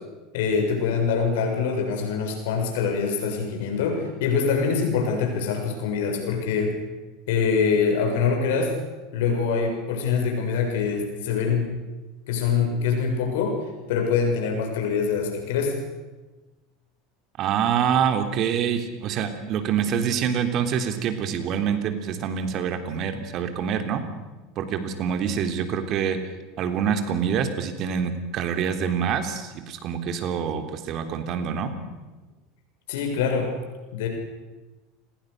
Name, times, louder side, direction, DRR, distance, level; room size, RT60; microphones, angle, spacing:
voice 1, 0.3-6.8 7.3-8.7 9.1-11.7 12.3-13.6 13.9-15.8 32.9-33.5 33.9-34.1, left 5 dB, 75° left, 3 dB, 6.8 m, -24 dB
voice 2, 17.4-24.0 24.6-26.2 26.6-31.8, right 7 dB, 50° right, 7 dB, 3.4 m, -26 dB
29.5 x 21.5 x 6.7 m, 1.2 s
hypercardioid pair, 95°, 0 cm